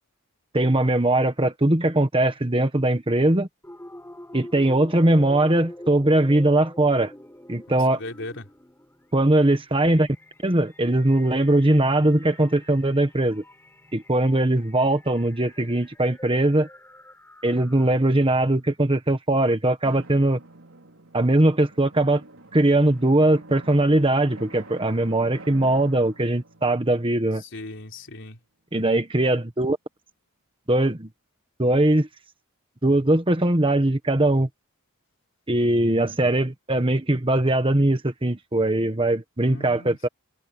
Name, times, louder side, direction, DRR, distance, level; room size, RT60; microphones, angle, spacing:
voice 1, 0.5-3.5 4.3-7.1 7.5-8.0 9.1-10.1 10.4-13.4 13.9-16.7 17.4-20.4 21.1-22.2 22.5-27.4 28.7-29.8 30.7-31.1 31.6-32.1 32.8-34.5 35.5-40.1, right 1 dB, 25° right, 1.4 m, -20 dB
sound 1, 3.6-18.2, left 1 dB, 10° left, 5.5 m, -46 dB
voice 2, 7.7-8.5 27.5-28.4 39.4-40.0, left 2 dB, 55° left, 4.1 m, -38 dB
Drum, 19.8-28.1, right 2 dB, 65° right, 4.2 m, -46 dB
head